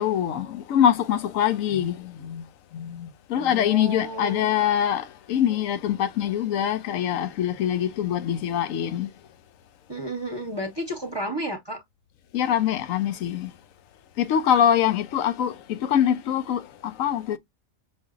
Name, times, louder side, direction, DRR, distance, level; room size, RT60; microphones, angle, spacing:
voice 1, 0.0-2.4 2.7-9.1 12.3-13.5 14.2-17.4, left 9 dB, 80° left, 1.0 m, -24 dB
voice 2, 3.4-4.5 9.9-11.8, right 1 dB, 25° right, 0.7 m, -32 dB
6.1 x 2.4 x 2.4 m
omnidirectional pair, 1.4 m